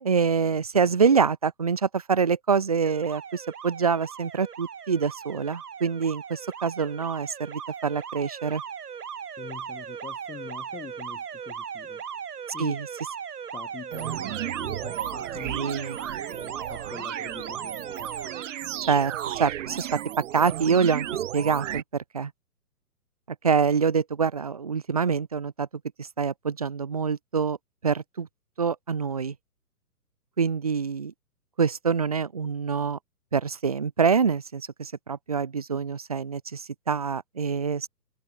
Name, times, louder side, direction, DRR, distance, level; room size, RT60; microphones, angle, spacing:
voice 1, 0.0-8.6 12.6-12.9 15.6-16.0 18.9-19.9 20.3-21.1 21.3-22.3 23.4-25.7 26.0-27.6 27.8-28.3 28.6-29.3 30.4-31.1 31.6-33.0 33.3-37.9, right 6 dB, 25° right, 0.4 m, -25 dB
Alarm, 2.8-18.5, right 7 dB, 75° right, 3.1 m, -38 dB
voice 2, 9.4-12.0 12.5-12.8 13.5-15.6 16.3-18.1, left 9 dB, 15° left, 4.0 m, -44 dB
sound 1, 13.9-21.8, right 11 dB, 50° right, 1.2 m, -34 dB
hypercardioid pair, 140°, 47 cm